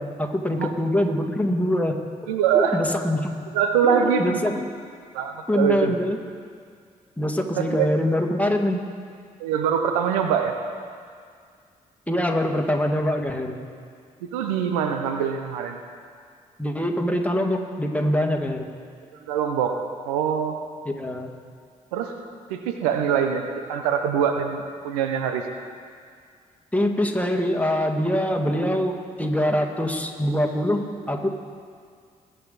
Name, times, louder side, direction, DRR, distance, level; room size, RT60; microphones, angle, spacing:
voice 1, 0.0-2.0 2.5-3.3 3.8-4.7 5.5-6.2 7.2-8.8 12.1-13.6 16.6-18.7 20.9-21.3 26.7-31.3, left 1 dB, 10° left, 2 dB, 1.9 m, -24 dB
voice 2, 2.3-2.8 3.5-4.4 5.1-5.9 7.6-7.9 9.4-10.5 14.3-15.8 19.3-19.8 20.1-20.6 21.9-22.2 22.5-25.4, right 8 dB, 85° right, 6 dB, 0.7 m, -23 dB
20.5 x 8.1 x 4.0 m, 2.1 s
hypercardioid pair, 45°, 18 cm